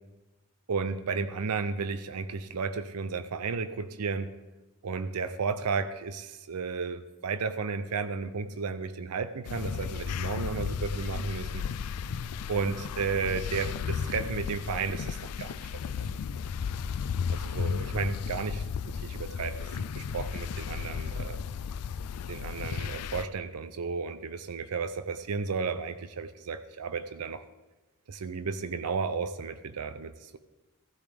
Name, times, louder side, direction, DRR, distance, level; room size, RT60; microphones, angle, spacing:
voice 1, 0.7-4.3 4.8-11.6 12.5-15.6 16.0-16.1 17.3-21.4 22.3-27.4 28.1-30.4, right 5 dB, 85° right, 10 dB, 0.6 m, -33 dB
sound 1, 9.5-23.2, left 6 dB, 85° left, 0.4 m, -34 dB
15.5 x 12.0 x 3.4 m, 1.1 s
head